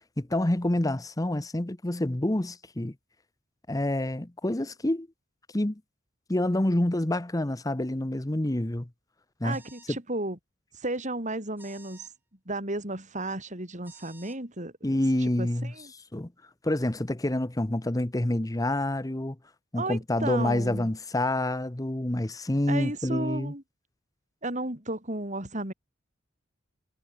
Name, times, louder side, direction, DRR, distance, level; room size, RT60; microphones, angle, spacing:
voice 1, 0.2-2.9 3.7-5.1 5.5-5.8 6.3-8.9 9.4-9.6 14.8-15.7 16.1-16.3 16.6-19.4 19.7-23.5, left 1 dB, 20° left, 0.9 m, -27 dB
voice 2, 9.4-10.4 10.7-12.1 12.5-14.9 15.2-15.9 19.8-20.9 22.7-23.6 24.4-25.7, right 2 dB, 40° right, 6.3 m, -33 dB
sound 1, 9.5-9.9 11.6-12.1 13.8-14.4, right 3 dB, 10° right, 7.2 m, -53 dB
head